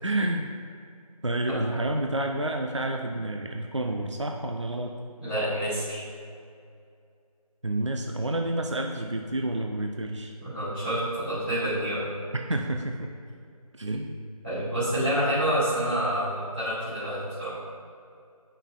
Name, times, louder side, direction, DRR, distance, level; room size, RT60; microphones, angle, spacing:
voice 1, 0.0-0.5 1.2-4.9 7.6-10.3 12.3-13.1 13.7-14.1, right 1 dB, 50° right, 2 dB, 0.5 m, -29 dB
voice 2, 5.2-6.0 10.4-12.0 14.4-17.5, right 1 dB, 20° right, -18 dB, 1.7 m, -28 dB
10.0 x 5.5 x 2.4 m, 2.4 s
figure-of-eight pair, 175°, 20 cm